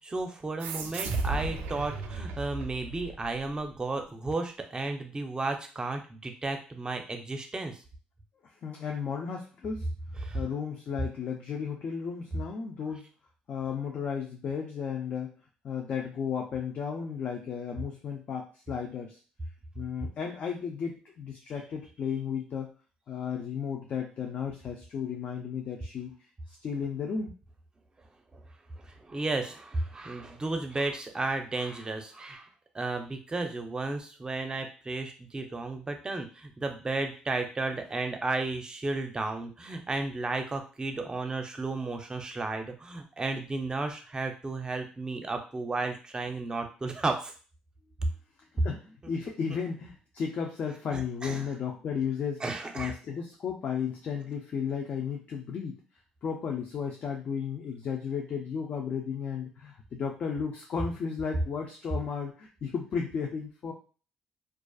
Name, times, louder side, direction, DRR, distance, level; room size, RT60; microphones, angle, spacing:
voice 1, 0.0-7.8 10.2-10.4 28.3-28.4 28.8-32.5 32.7-47.3 50.9-51.5 52.4-52.9, right 3 dB, 25° right, 5 dB, 0.5 m, -33 dB
sound 1, 0.6-3.6, right 3 dB, 80° right, 0.3 m, -35 dB
voice 2, 8.4-9.9 10.3-13.1 13.5-15.4 15.6-19.2 19.7-22.7 23.1-26.2 26.5-27.4 48.5-52.4 52.8-55.8 56.2-63.7, left 6 dB, 55° left, 1 dB, 0.4 m, -34 dB
2.4 x 2.3 x 2.3 m, 0.37 s
supercardioid pair, 70°, 3 cm